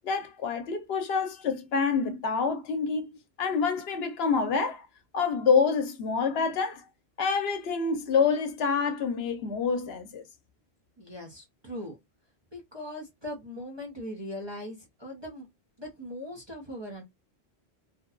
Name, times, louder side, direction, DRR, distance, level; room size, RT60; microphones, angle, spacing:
voice 1, 0.0-4.9 5.1-6.8 7.2-10.2, left 5 dB, 70° left, 0.8 m, -27 dB
voice 2, 11.0-12.0 12.5-15.5 15.8-17.0, left 1 dB, 25° right, 0.8 m, -40 dB
2.9 x 2.2 x 2.4 m
omnidirectional pair, 1.1 m